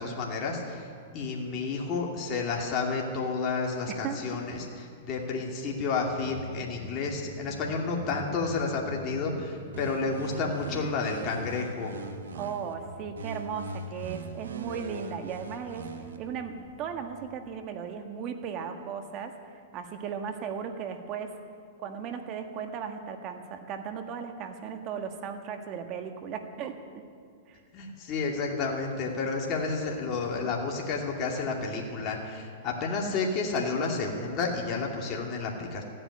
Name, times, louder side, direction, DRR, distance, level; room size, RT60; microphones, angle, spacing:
voice 1, 0.0-12.0 27.7-35.8, left 4 dB, 35° left, -1 dB, 2.5 m, -31 dB
sound 1, 6.1-17.6, right 1 dB, 20° right, 3.8 m, -48 dB
sound 2, 9.7-12.7 13.2-16.2, right 3 dB, 90° right, 1.4 m, -41 dB
voice 2, 12.3-15.9 16.2-21.4 21.8-27.0 27.5-27.6, right 7 dB, 40° right, 6 dB, 1.6 m, -36 dB
15.0 x 9.0 x 9.7 m, 2.2 s
hypercardioid pair, 130°, 0 cm